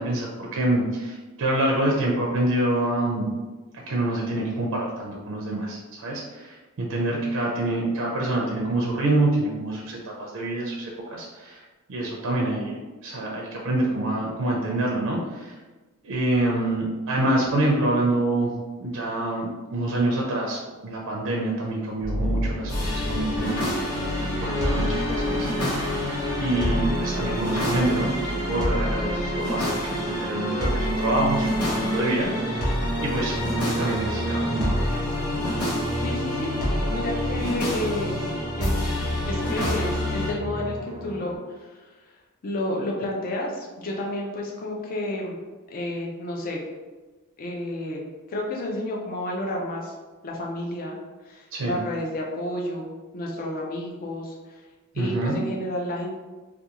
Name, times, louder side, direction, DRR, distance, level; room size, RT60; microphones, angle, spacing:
voice 1, 0.0-3.3 3.9-11.6 11.9-12.7 13.0-15.5 16.0-18.5 18.8-25.8 26.4-32.6 33.0-35.0 51.5-51.8 54.9-55.4, right 1 dB, 60° right, -2 dB, 0.4 m, -26 dB
sound 1, 22.0-41.4, equal, ahead, 0.9 m, -31 dB
sound 2, 22.7-40.3, equal, 85° left, 0.9 m, -28 dB
voice 2, 36.0-36.5 36.8-38.2 38.5-38.9 39.3-41.9 42.4-45.4 45.7-46.6 47.4-49.9 50.2-51.0 51.2-54.6 54.9-56.1, left 1 dB, 40° left, -1 dB, 0.4 m, -31 dB
2.4 x 2.2 x 2.8 m, 1.2 s
head